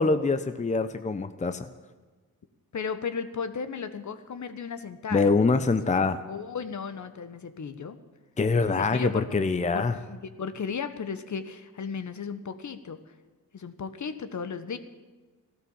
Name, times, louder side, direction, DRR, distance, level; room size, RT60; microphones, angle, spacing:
voice 1, 0.0-1.7 5.1-6.2 8.4-10.0, left 4 dB, 20° left, 10 dB, 0.8 m, -24 dB
voice 2, 2.7-5.3 5.9-8.0 8.7-13.0 13.5-14.8, left 6 dB, 50° left, 11 dB, 1.2 m, -35 dB
14.5 x 12.5 x 7.2 m, 1.3 s
supercardioid pair, 60°, 38 cm